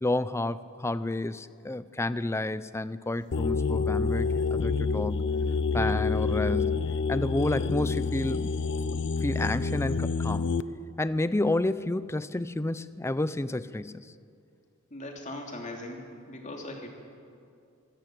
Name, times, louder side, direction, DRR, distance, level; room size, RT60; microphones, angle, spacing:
voice 1, 0.0-5.3 5.7-6.8 7.1-8.5 9.2-10.5 11.0-14.1, left 2 dB, 15° left, 16 dB, 0.5 m, -30 dB
sound 1, 3.3-10.6, left 4 dB, 60° left, 0.6 m, -28 dB
voice 2, 14.9-16.9, left 1 dB, 35° left, 2 dB, 3.0 m, -40 dB
24.5 x 17.0 x 7.7 m, 2.4 s
head